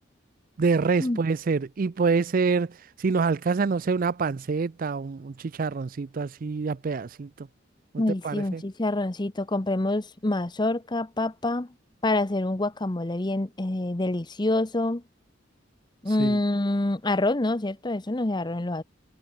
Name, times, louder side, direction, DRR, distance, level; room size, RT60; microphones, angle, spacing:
voice 1, 0.6-2.7 3.0-7.5 7.9-8.6 16.2-16.4, right 4 dB, 45° right, 0.4 m, -26 dB
voice 2, 8.0-11.7 12.0-15.0 16.0-18.8, left 2 dB, 25° left, 0.8 m, -26 dB
head